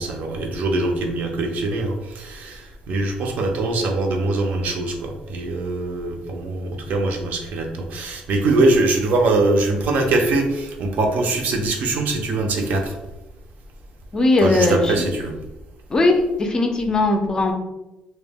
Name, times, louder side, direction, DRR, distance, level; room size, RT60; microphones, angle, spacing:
voice 1, 0.0-13.0 14.4-15.4, right 2 dB, 65° right, 2 dB, 0.5 m, -22 dB
voice 2, 14.1-15.1 15.9-17.5, left 2 dB, 25° left, 4 dB, 0.4 m, -19 dB
2.1 x 2.1 x 3.4 m, 0.99 s
cardioid pair, 130°, 3 cm